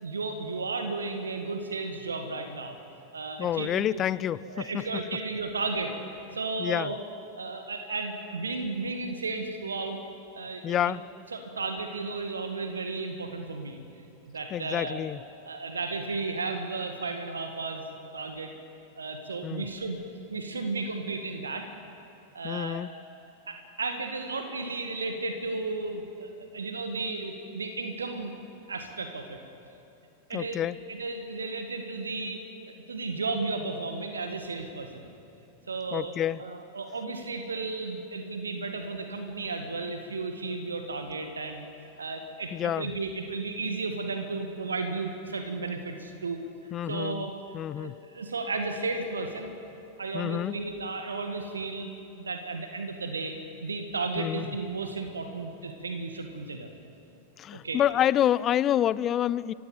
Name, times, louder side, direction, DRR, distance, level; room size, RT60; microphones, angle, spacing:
voice 1, 0.0-2.8 3.1-4.0 4.4-5.9 6.3-7.0 7.4-10.0 10.3-11.0 11.3-13.8 14.2-15.1 15.4-18.5 19.0-20.0 20.3-21.7 22.3-22.8 23.5-28.3 28.7-29.4 30.3-32.4 32.9-35.1 35.7-36.1 36.4-41.7 42.0-46.4 46.9-47.3 47.7-49.5 50.0-51.9 52.2-53.4 53.6-56.7 57.5-57.8, right 3 dB, 75° right, 5 dB, 1.8 m, -34 dB
voice 2, 3.4-4.4 4.7-4.8 6.6-6.9 10.6-11.0 14.5-15.2 19.4-19.7 22.4-22.9 30.3-30.8 35.9-36.4 42.5-42.9 46.7-47.3 47.5-48.0 50.1-50.6 54.2-54.5 57.4-59.5, left 11 dB, 30° left, 19 dB, 0.5 m, -28 dB
30.0 x 15.5 x 7.8 m, 2.8 s
figure-of-eight pair, 90°, 0 cm